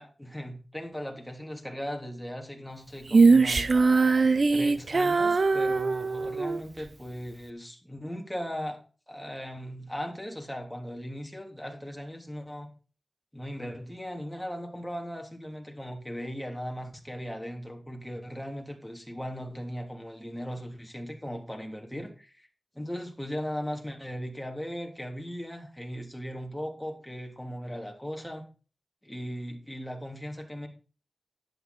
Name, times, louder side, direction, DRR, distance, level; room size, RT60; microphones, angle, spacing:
voice 1, 0.0-3.7 4.5-8.8 9.1-12.7 13.3-22.5 22.7-28.5 29.0-30.7, equal, 5° left, 2 dB, 3.2 m, -38 dB
Female singing, 3.1-6.6, right 4 dB, 60° right, 0.8 m, -21 dB
11.0 x 9.1 x 4.3 m, 0.36 s
cardioid pair, 50°, 0 cm